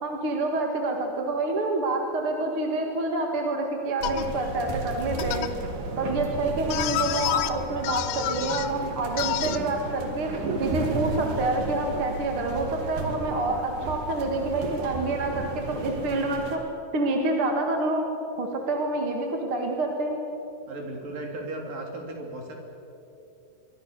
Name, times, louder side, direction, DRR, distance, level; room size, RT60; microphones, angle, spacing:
voice 1, 0.0-5.5 6.0-10.3 10.6-16.6 16.9-18.0 18.4-20.2, right 2 dB, 45° right, 2 dB, 2.4 m, -27 dB
sound 1, 4.0-4.2 5.2-5.5 6.7-7.5 7.8-8.7 9.2-9.6, left 12 dB, 85° left, 2.8 m, -28 dB
sound 2, 4.0-16.6, right 3 dB, 90° right, 4.5 m, -34 dB
voice 2, 6.0-6.3 20.7-22.6, right 2 dB, 65° right, 2 dB, 5.1 m, -36 dB
26.5 x 23.5 x 6.9 m, 2.8 s
omnidirectional pair, 4.2 m